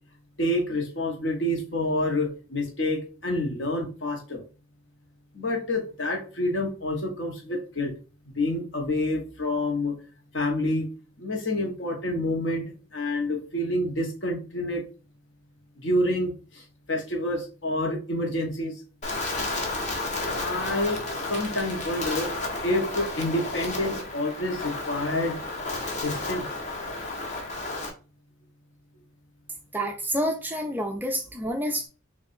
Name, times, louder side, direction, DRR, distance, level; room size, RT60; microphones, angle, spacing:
voice 1, 0.4-4.4 5.3-7.9 8.3-10.0 10.3-10.9 11.2-12.6 12.9-14.8 15.8-18.8 20.4-22.3 22.6-25.4 26.0-26.5, left 1 dB, 55° left, 1 dB, 1.1 m, -28 dB
Wind, 19.0-27.9, left 2 dB, 35° left, 0.9 m, -32 dB
voice 2, 29.7-31.9, equal, 10° right, 3 dB, 0.4 m, -28 dB
3.6 x 2.5 x 4.2 m, 0.35 s
head